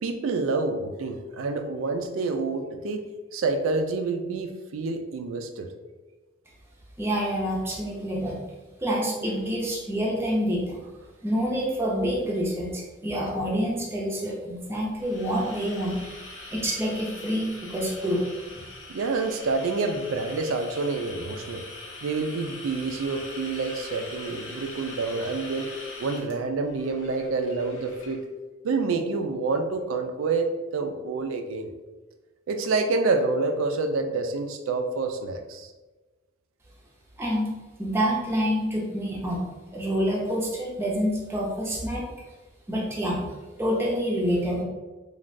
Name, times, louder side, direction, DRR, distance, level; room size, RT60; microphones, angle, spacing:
voice 1, 0.0-3.0 3.3-5.7 18.9-21.6 22.0-25.7 26.0-28.2 28.6-30.5 30.7-31.7 32.5-35.7, right 3 dB, 80° right, 6 dB, 0.4 m, -28 dB
voice 2, 7.0-8.4 8.8-10.8 11.2-16.0 16.5-18.2 37.2-37.5 37.8-39.4 39.7-42.0 42.7-43.2 43.6-44.6, equal, 10° right, -4 dB, 0.4 m, -27 dB
sound 1, 14.7-28.2, left 2 dB, 85° left, 0.8 m, -42 dB
3.2 x 2.3 x 2.5 m, 1.2 s
head